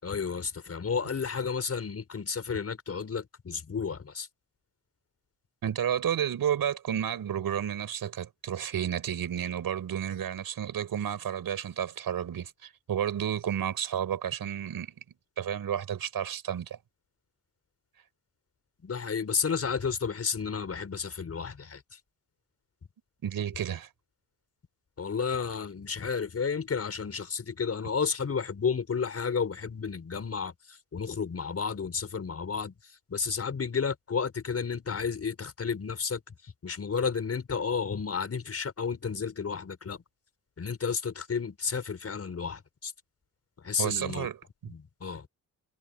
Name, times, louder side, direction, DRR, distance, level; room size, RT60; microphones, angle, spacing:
voice 1, 0.0-4.3 18.8-22.0 25.0-40.0 40.6-42.9 43.6-44.3 44.7-45.3, left 6 dB, 40° left, 6.1 m, -32 dB
voice 2, 5.6-14.9 15.4-16.8 23.2-23.9 43.8-44.4, right 9 dB, 75° right, 5.9 m, -31 dB
wide cardioid pair, 130°, 36 cm